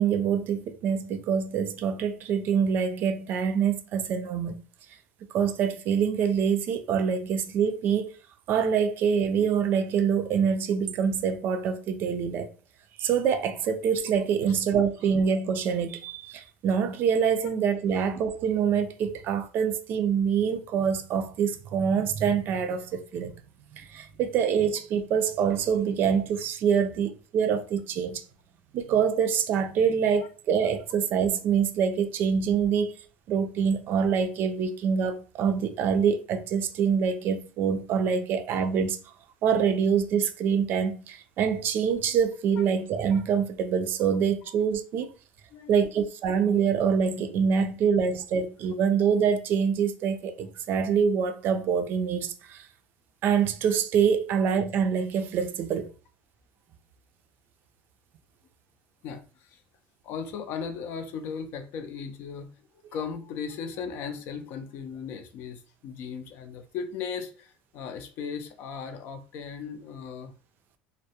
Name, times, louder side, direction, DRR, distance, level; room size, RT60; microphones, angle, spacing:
voice 1, 0.0-4.6 5.3-8.1 8.5-12.5 13.0-23.3 23.7-28.2 28.7-32.9 33.3-39.0 39.4-45.1 45.7-52.7 53.2-55.9, right 7 dB, 55° right, 0.3 m, -25 dB
voice 2, 59.0-59.6 60.0-62.6 62.9-70.3, left 6 dB, 60° left, 0.4 m, -37 dB
2.2 x 2.0 x 2.8 m
supercardioid pair, 110°, 4 cm